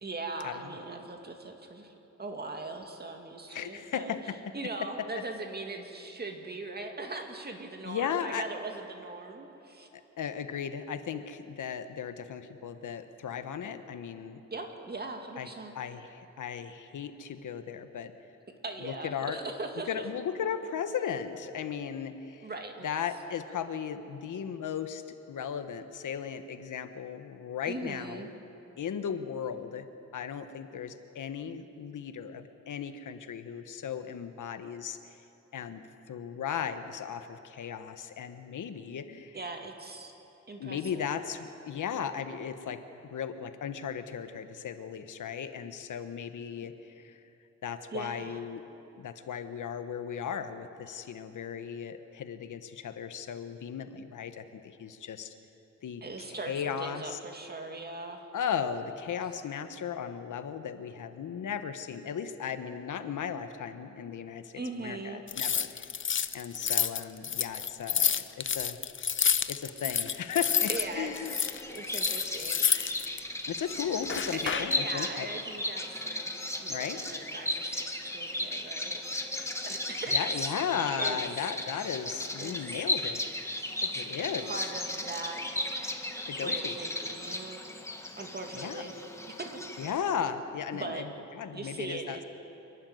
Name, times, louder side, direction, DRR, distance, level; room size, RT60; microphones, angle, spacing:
voice 1, 0.0-1.9 2.2-4.1 4.5-9.9 14.5-15.7 18.6-20.0 22.4-22.9 27.7-28.3 39.3-40.1 40.5-41.1 47.9-48.4 56.0-58.3 64.5-65.2 70.7-71.4 71.7-72.6 74.4-80.2 81.0-81.2 82.4-82.8 83.8-84.0 84.5-85.4 86.4-87.6 88.2-88.9 89.4-89.5 90.7-91.1 91.5-92.2, right 3 dB, 30° right, 3 dB, 2.3 m, -40 dB
voice 2, 3.5-4.4 7.8-8.4 9.9-14.4 15.4-15.5 15.7-18.1 18.8-19.4 19.9-22.5 22.8-28.2 28.8-29.9 30.1-35.0 35.5-39.4 40.6-47.2 47.6-48.6 49.0-55.3 55.8-56.0 56.3-57.2 58.3-64.5 64.8-65.9 66.3-68.8 69.5-71.4 73.5-75.3 76.7-77.0 80.1-83.2 83.9-84.7 86.3-86.7 88.5-88.8 89.8-92.2, left 8 dB, 85° left, 9 dB, 1.3 m, -36 dB
sound 1, 65.3-70.9 71.2-73.2 74.0-74.8, left 7 dB, 40° left, 0.7 m, -29 dB
Bird vocalization bird call bird song, 70.4-89.9, left 1 dB, 10° left, 1.7 m, -35 dB
27.0 x 12.0 x 9.5 m, 3.0 s
wide cardioid pair, 125°, 30 cm